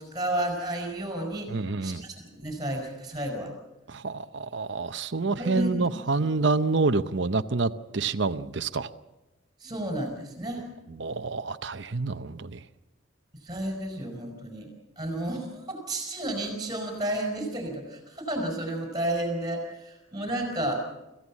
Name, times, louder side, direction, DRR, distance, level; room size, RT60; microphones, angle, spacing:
voice 1, 0.0-3.5 5.3-5.9 6.2-6.3 9.6-10.7 13.4-20.8, right 1 dB, 20° right, 2 dB, 4.8 m, -32 dB
voice 2, 1.5-2.0 3.9-8.9 11.0-12.6, right 3 dB, 60° right, 10 dB, 0.7 m, -27 dB
26.5 x 15.5 x 7.3 m, 1.0 s
head